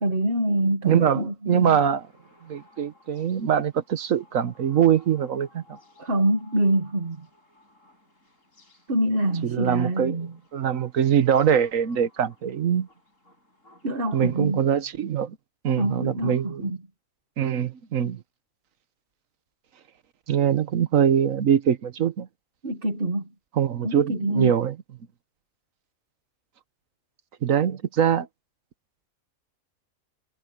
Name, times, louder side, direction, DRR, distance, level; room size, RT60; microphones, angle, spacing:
voice 1, 0.0-1.8 6.0-7.3 8.9-10.3 13.8-14.6 15.8-16.8 22.6-23.3 23.8-24.5, right 1 dB, 45° right, 2.0 m, -25 dB
voice 2, 0.8-2.0 2.4-5.6 9.4-12.9 14.1-15.4 15.6-16.7 17.4-18.2 20.3-22.3 23.6-24.7 27.4-28.3, right 8 dB, 85° right, 1.5 m, -23 dB
sound 1, 1.5-14.3, left 2 dB, 75° left, 8.1 m, -58 dB
omnidirectional pair, 1.4 m